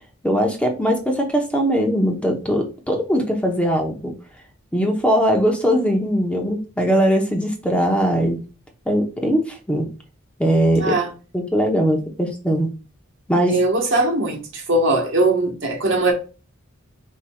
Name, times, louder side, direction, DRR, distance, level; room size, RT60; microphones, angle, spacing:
voice 1, 0.2-4.1 4.7-8.4 8.9-9.9 10.4-10.9 11.3-12.7 13.3-13.6, equal, 5° left, 0.9 m, -20 dB
voice 2, 10.8-11.1 13.5-16.1, right 2 dB, 65° right, 1.3 m, -20 dB
4.6 x 4.5 x 2.3 m
head